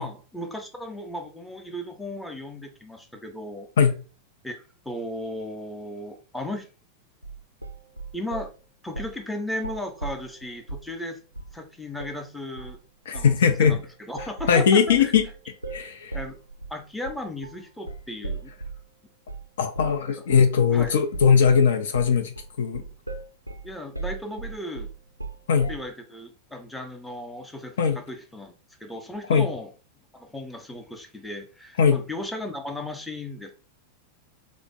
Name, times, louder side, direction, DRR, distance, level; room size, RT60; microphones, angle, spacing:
voice 1, 0.0-3.7 4.4-6.7 8.1-8.5 8.8-11.2 11.5-12.8 13.1-15.1 16.1-16.4 16.7-18.5 20.1-20.2 20.7-20.9 23.6-24.9 25.7-28.5 28.8-29.7 30.1-33.5, left 1 dB, 5° left, 0.6 m, -36 dB
sound 1, 7.2-8.5 8.9-9.2 9.5-10.9 11.3-11.6 12.0-12.2 12.6-12.8 13.1-13.4 13.6-18.9 19.3-19.5 19.7-20.0 20.3-20.5 20.8-25.9, right 3 dB, 90° right, 0.3 m, -37 dB
voice 2, 13.1-13.8 14.5-15.2 15.7-16.2 19.6-22.8 25.5-25.7 27.8-28.0 29.3-29.5 31.8-32.0, left 6 dB, 60° left, 0.4 m, -20 dB
3.2 x 2.0 x 3.7 m
figure-of-eight pair, 90°, 0 cm